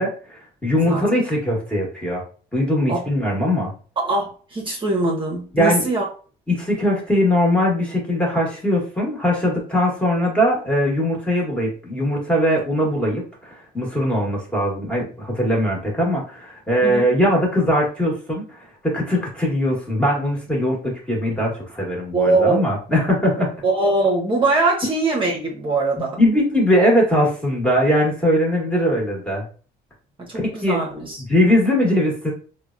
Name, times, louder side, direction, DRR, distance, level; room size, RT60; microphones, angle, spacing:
voice 1, 0.0-2.2 2.5-3.7 5.5-5.9 6.5-23.5 26.2-29.4 30.3-30.8 31.2-32.3, equal, 5° left, -3 dB, 1.2 m, -20 dB
voice 2, 4.0-6.1 16.8-17.1 22.1-22.7 23.6-26.2 30.2-31.2, right 2 dB, 30° right, -2 dB, 0.8 m, -21 dB
3.5 x 2.1 x 2.5 m, 0.40 s
cardioid pair, 110°, 17 cm